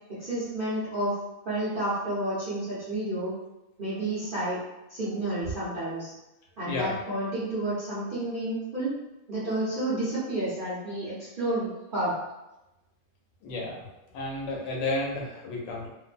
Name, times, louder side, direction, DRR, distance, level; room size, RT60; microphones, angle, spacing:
voice 1, 0.1-1.2 1.4-3.3 3.8-4.6 4.9-6.1 6.6-8.9 9.3-12.1, right 1 dB, 50° right, -12 dB, 0.6 m, -30 dB
voice 2, 6.6-7.0 13.4-13.9 14.1-15.9, left 2 dB, 85° left, -2 dB, 1.3 m, -32 dB
2.9 x 2.0 x 2.4 m, 0.95 s
omnidirectional pair, 1.8 m